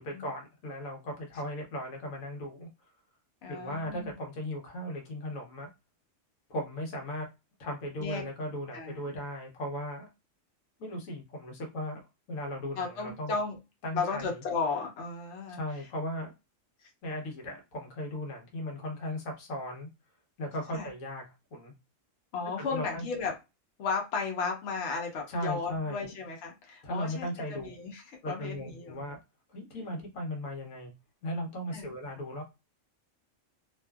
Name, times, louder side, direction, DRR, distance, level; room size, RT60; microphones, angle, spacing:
voice 1, 0.0-2.7 3.5-5.7 6.5-7.3 7.6-10.1 10.8-12.0 12.3-13.3 13.8-14.4 15.5-16.3 17.0-19.9 20.4-21.2 21.5-21.7 22.6-23.0 25.3-26.1 26.8-27.7 28.2-29.2 29.5-30.9 31.2-32.4, left 1 dB, 90° left, 1 dB, 1.3 m, -37 dB
voice 2, 3.4-4.1 8.0-8.2 8.7-9.2 12.8-13.6 13.9-15.6 20.7-20.9 22.3-23.3 23.8-28.9 31.7-31.9, left 4 dB, 65° left, 1 dB, 1.0 m, -34 dB
2.7 x 2.4 x 2.2 m, 0.25 s
omnidirectional pair, 1.4 m